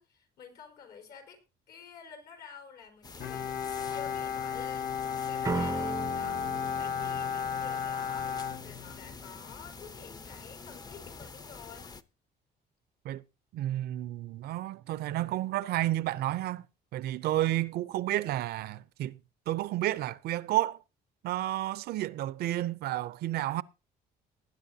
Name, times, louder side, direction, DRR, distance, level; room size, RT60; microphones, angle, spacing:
voice 1, 0.0-1.4 1.7-11.9, left 7 dB, 70° left, 4.4 m, -50 dB
sound 1, 3.0-12.0, left 4 dB, 25° left, 0.7 m, -46 dB
Bowed string instrument, 3.2-9.4, left 7 dB, 55° left, 1.4 m, -34 dB
sound 2, 5.4-8.3, right 5 dB, 20° right, 0.5 m, -37 dB
voice 2, 13.5-16.6 16.9-19.2 19.5-20.8 21.2-23.6, right 14 dB, 70° right, 0.6 m, -31 dB
19.5 x 9.7 x 2.8 m
cardioid pair, 110°, 17 cm